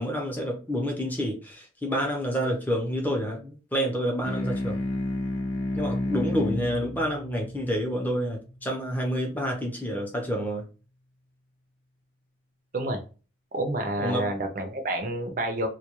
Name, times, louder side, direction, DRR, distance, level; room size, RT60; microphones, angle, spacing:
voice 1, 0.0-4.8 5.7-10.6 14.0-14.3, equal, 10° left, 0 dB, 0.6 m, -28 dB
sound 1, 4.2-9.1, left 1 dB, 85° left, 0.5 m, -32 dB
voice 2, 13.5-15.7, right 1 dB, 45° right, 5 dB, 0.5 m, -29 dB
2.2 x 2.2 x 2.9 m, 0.34 s
head